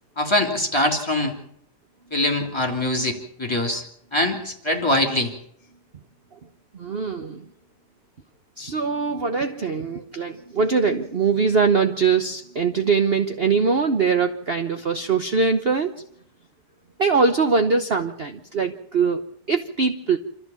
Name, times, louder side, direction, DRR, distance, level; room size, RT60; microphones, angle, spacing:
voice 1, 0.2-1.4 2.1-3.8 4.1-5.3, left 1 dB, 15° left, 3 dB, 3.2 m, -23 dB
voice 2, 6.7-7.4 8.6-16.0 17.0-19.2 19.5-20.2, right 5 dB, 40° right, 7 dB, 1.2 m, -22 dB
27.0 x 14.0 x 7.2 m, 0.69 s
omnidirectional pair, 1.8 m